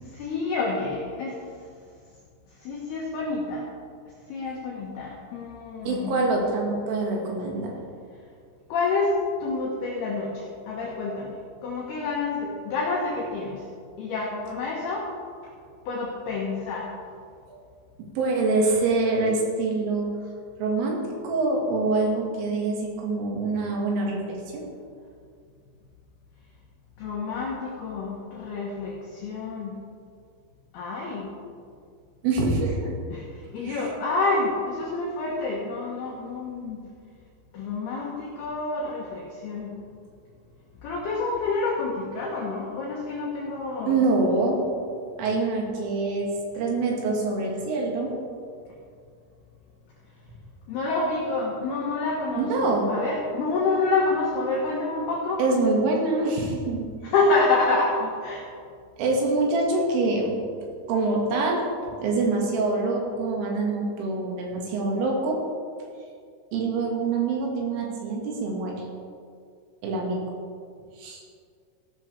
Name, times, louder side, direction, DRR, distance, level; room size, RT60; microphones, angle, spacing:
voice 1, 0.2-1.4 2.6-3.7 4.3-6.4 8.7-11.4 11.6-13.6 14.0-15.1 15.9-16.9 27.0-29.7 30.7-31.3 33.1-36.8 37.5-39.7 40.8-43.9 50.7-55.4 57.0-58.5, left 3 dB, 70° left, -3 dB, 2.5 m, -28 dB
voice 2, 5.8-7.7 17.5-17.6 18.2-20.1 20.6-21.0 21.2-24.6 32.2-32.9 33.6-33.9 43.9-44.6 45.2-48.1 52.4-52.9 55.4-56.9 59.0-60.3 60.9-61.6 62.0-65.4 66.5-68.7 69.8-70.2 71.0-71.2, right 3 dB, 75° right, -1 dB, 4.2 m, -25 dB
15.0 x 11.5 x 3.4 m, 2.2 s
omnidirectional pair, 6.0 m